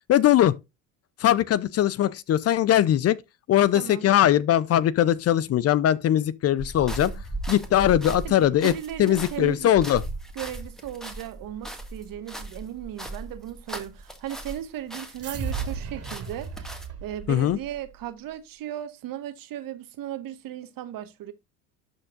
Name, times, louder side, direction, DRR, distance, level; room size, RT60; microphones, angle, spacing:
voice 1, 0.1-0.5 1.2-3.2 3.5-8.7 9.0-10.0 17.3-17.6, left 11 dB, 40° left, 0.5 m, -21 dB
voice 2, 3.7-4.1 8.2-9.7 10.3-21.3, right 11 dB, 55° right, 1.4 m, -36 dB
sound 1, 6.6-14.6 14.9-16.9, right 1 dB, ahead, 1.8 m, -37 dB
sound 2, 15.2-17.9, right 6 dB, 35° right, 2.3 m, -35 dB
12.5 x 4.5 x 2.5 m
supercardioid pair, 95°, 41 cm